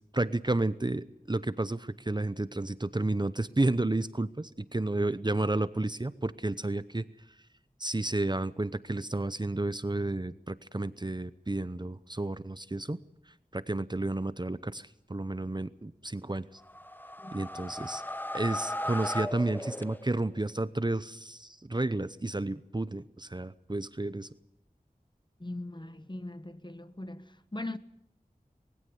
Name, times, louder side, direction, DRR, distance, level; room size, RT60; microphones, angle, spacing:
voice 1, 0.1-7.0 7.8-13.0 13.3-16.6 17.3-18.0 18.3-24.3, right 2 dB, 30° right, 0.7 m, -31 dB
sound 1, 16.6-20.4, left 1 dB, 10° left, 0.9 m, -37 dB
voice 2, 25.4-27.8, left 2 dB, 30° left, 1.2 m, -40 dB
21.0 x 16.0 x 9.5 m
wide cardioid pair, 45°, 15 cm